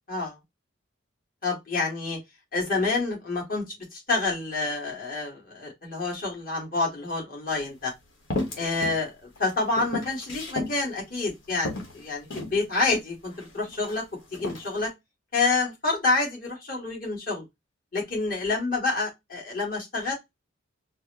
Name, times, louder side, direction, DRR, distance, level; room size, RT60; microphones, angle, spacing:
voice 1, 1.4-2.2 2.5-3.6 3.9-7.9 8.6-14.0 14.3-14.9 15.3-17.4 17.9-20.1, left 3 dB, 45° left, 1.8 m, -28 dB
sound 1, 7.5-7.6 8.3-9.0 9.4-10.8 11.2-11.3 11.6-12.6 13.3-14.0 14.3-14.7, left 2 dB, 70° left, 1.2 m, -33 dB
4.4 x 2.1 x 2.9 m
head